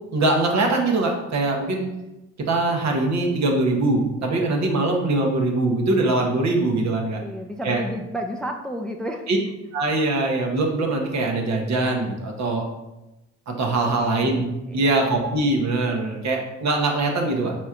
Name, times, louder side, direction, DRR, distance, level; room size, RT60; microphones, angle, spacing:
voice 1, 0.1-1.9 2.5-7.2 7.6-7.8 9.3-9.4 9.7-12.6 13.5-14.4 14.7-17.6, right 2 dB, 60° right, 1 dB, 1.0 m, -22 dB
voice 2, 7.2-9.3 13.8-14.4 14.7-15.0, equal, 5° left, 3 dB, 0.4 m, -32 dB
4.5 x 4.1 x 2.4 m, 0.97 s
supercardioid pair, 55°, 31 cm